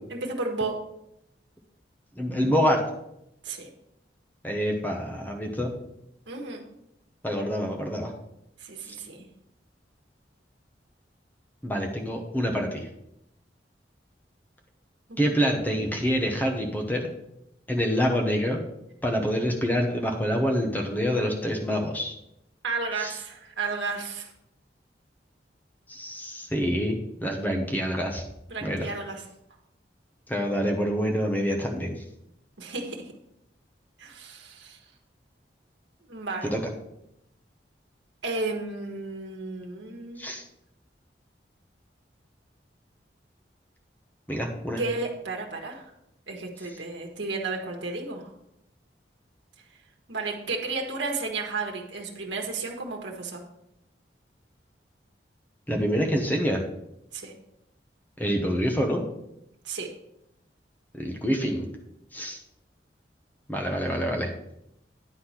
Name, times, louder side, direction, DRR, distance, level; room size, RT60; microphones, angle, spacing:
voice 1, 0.1-0.8 3.4-3.7 6.3-6.6 8.6-9.3 15.1-15.3 22.6-24.3 28.5-29.2 32.6-33.0 34.0-34.8 36.1-36.5 38.2-40.2 44.8-45.9 46.3-48.3 50.1-53.4 57.1-57.3 59.6-59.9, right 3 dB, 85° right, 1 dB, 1.3 m, -33 dB
voice 2, 2.2-2.8 4.4-5.7 7.2-8.1 8.9-9.0 11.6-12.9 15.2-17.1 17.7-18.6 19.0-22.1 23.0-23.2 25.9-28.2 28.6-28.9 30.3-31.9 36.4-36.6 40.2-40.4 44.3-44.8 55.7-56.6 58.2-59.0 60.9-61.7 62.1-62.4 63.5-64.3, equal, 10° left, 2 dB, 0.9 m, -26 dB
9.7 x 4.2 x 5.7 m, 0.81 s
head